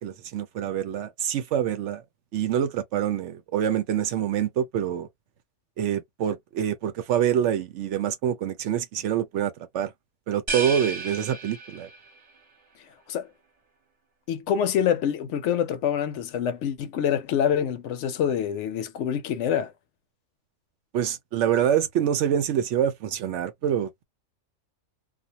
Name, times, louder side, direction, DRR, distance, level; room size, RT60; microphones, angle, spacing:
voice 1, 0.0-2.0 2.3-5.1 5.8-9.9 10.3-11.9 20.9-24.0, right 9 dB, 70° right, 0.9 m, -26 dB
sound 1, 10.5-12.2, right 3 dB, 30° right, 0.9 m, -33 dB
voice 2, 14.3-19.7, left 9 dB, 70° left, 0.8 m, -26 dB
2.4 x 2.2 x 2.7 m
omnidirectional pair, 1.3 m